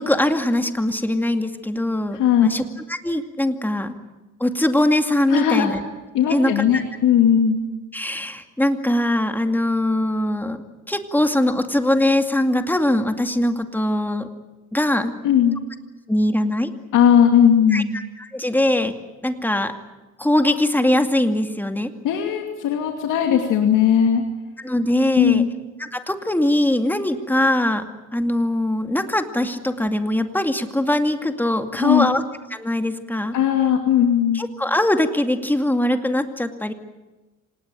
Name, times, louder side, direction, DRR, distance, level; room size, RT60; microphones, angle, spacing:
voice 1, 0.0-3.9 4.4-5.8 6.3-6.8 7.9-10.6 10.9-14.3 14.7-15.1 16.1-16.7 17.7-19.0 19.2-19.7 20.2-21.9 24.6-25.5 25.8-27.8 28.1-32.2 32.5-33.4 34.3-36.7, left 1 dB, 5° left, 6 dB, 2.3 m, -21 dB
voice 2, 2.1-2.5 5.3-5.7 6.1-7.6 15.2-15.6 16.9-17.9 22.0-24.2 25.2-25.5 31.7-32.1 33.3-34.4, left 9 dB, 90° left, 3 dB, 2.6 m, -18 dB
26.5 x 19.0 x 9.1 m, 1.1 s
cardioid pair, 90°, 30 cm